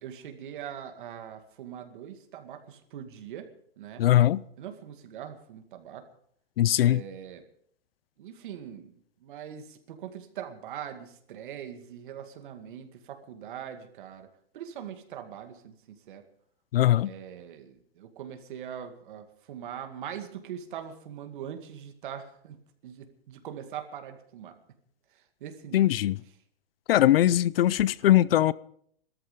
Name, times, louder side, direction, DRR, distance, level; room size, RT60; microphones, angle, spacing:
voice 1, 0.0-3.5 3.8-4.0 4.6-6.1 6.8-7.4 8.2-8.9 9.2-14.3 14.5-16.2 17.0-24.6 25.1-25.9, right 9 dB, 55° right, 2.2 m, -42 dB
voice 2, 4.0-4.4 6.6-7.0 16.7-17.1 25.7-26.1 26.9-28.5, left 13 dB, 70° left, 0.6 m, -21 dB
17.5 x 13.5 x 5.4 m
hypercardioid pair, 165°, 30 cm